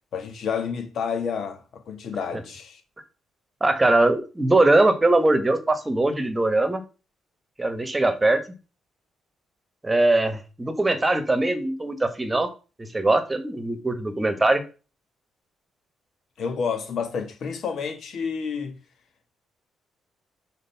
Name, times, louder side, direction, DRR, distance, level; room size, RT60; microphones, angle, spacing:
voice 1, 0.1-2.8 16.4-18.8, left 6 dB, 65° left, 2.0 m, -30 dB
voice 2, 3.6-6.8 7.6-8.4 9.8-12.5 12.8-14.6, right 2 dB, 15° right, 1.5 m, -21 dB
6.5 x 4.4 x 5.8 m
cardioid pair, 90°, 0 cm